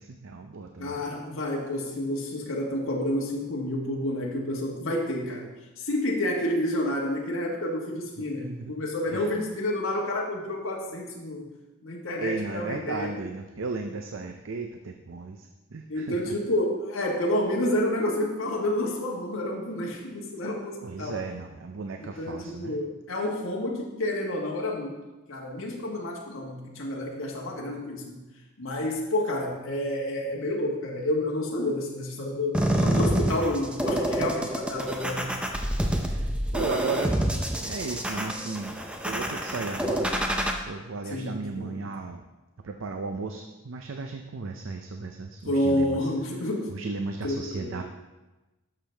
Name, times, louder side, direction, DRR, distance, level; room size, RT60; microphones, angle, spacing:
voice 1, 0.0-1.0 8.2-8.7 9.1-9.3 12.2-16.3 20.8-22.8 34.2-34.5 35.9-37.2 37.6-38.7 39.1-40.1 40.6-42.2 42.6-46.1 46.7-47.8, right 3 dB, 60° right, 5 dB, 0.5 m, -35 dB
voice 2, 0.8-5.5 5.8-11.4 11.8-13.2 15.9-21.2 22.0-25.0 25.3-28.2 28.6-35.3 41.1-41.8 45.4-46.7 47.2-47.8, left 1 dB, 70° left, -2 dB, 1.5 m, -29 dB
sound 1, 32.5-40.5, right 1 dB, 5° right, 0.6 m, -27 dB
11.5 x 6.6 x 3.4 m, 1.1 s
head